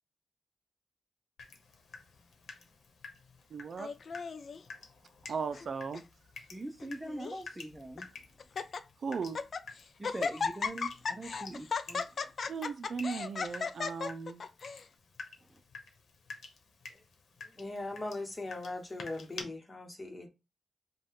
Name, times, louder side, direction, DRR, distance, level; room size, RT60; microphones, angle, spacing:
Water tap faucet / Drip, 1.4-19.4, left 4 dB, 80° left, 1.0 m, -51 dB
voice 1, 3.5-3.9 5.3-6.0 9.0-9.4 12.5-14.4, right 5 dB, 65° right, 0.5 m, -37 dB
Laughter, 3.8-4.6 5.3-5.7 5.9-6.0 6.8-7.4 8.0-8.1 8.4-8.8 9.2-9.6 10.0-14.8, left 5 dB, 60° left, 0.4 m, -36 dB
voice 2, 6.5-8.1 10.0-12.3 15.4-15.6, right 1 dB, 15° right, 0.6 m, -43 dB
voice 3, 17.4-20.3, left 2 dB, 30° left, 1.2 m, -40 dB
5.1 x 2.3 x 3.7 m
cardioid pair, 90°, 0 cm